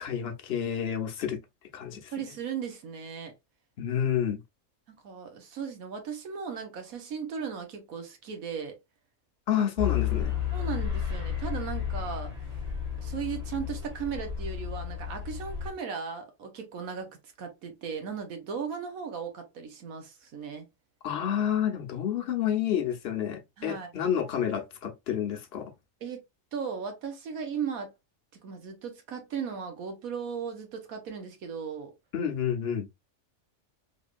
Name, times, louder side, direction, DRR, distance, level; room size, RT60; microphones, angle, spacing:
voice 1, 0.0-1.4 1.7-2.1 3.8-4.4 9.5-10.4 21.0-25.7 32.1-32.9, left 9 dB, 55° left, 0.9 m, -29 dB
voice 2, 1.9-3.3 5.0-8.8 9.5-9.7 10.5-12.3 13.0-17.1 17.4-20.7 23.6-24.0 26.0-26.2 26.5-27.9 28.4-31.9, right 6 dB, 90° right, 1.5 m, -36 dB
sound 1, 9.8-15.7, left 9 dB, 30° right, 1.5 m, -32 dB
3.7 x 3.2 x 2.5 m
omnidirectional pair, 1.4 m